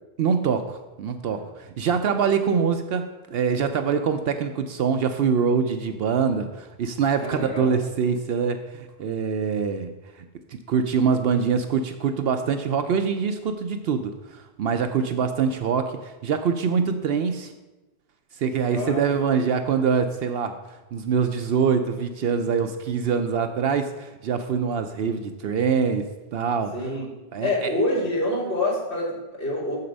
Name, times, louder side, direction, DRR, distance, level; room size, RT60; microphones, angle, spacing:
voice 1, 0.2-9.9 10.5-17.5 18.3-20.6 20.9-26.9 27.3-27.7, right 6 dB, 65° right, 8 dB, 0.7 m, -24 dB
voice 2, 7.2-7.8 18.7-19.1 26.7-27.0 27.4-29.8, left 1 dB, 70° left, -6 dB, 3.0 m, -26 dB
7.0 x 6.7 x 5.3 m, 1.1 s
omnidirectional pair, 1.1 m